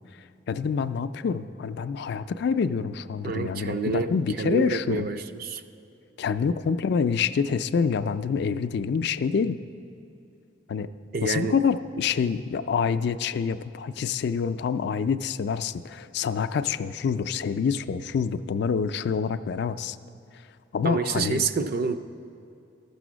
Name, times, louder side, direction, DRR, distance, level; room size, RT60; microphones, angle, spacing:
voice 1, 0.5-5.1 6.2-9.6 10.7-10.9 11.2-20.0 20.7-21.4, left 6 dB, 60° left, 12 dB, 0.3 m, -26 dB
voice 2, 3.2-5.6 11.1-11.6 20.8-22.0, right 4 dB, 55° right, 9 dB, 0.5 m, -28 dB
13.5 x 6.9 x 6.2 m, 2.6 s
head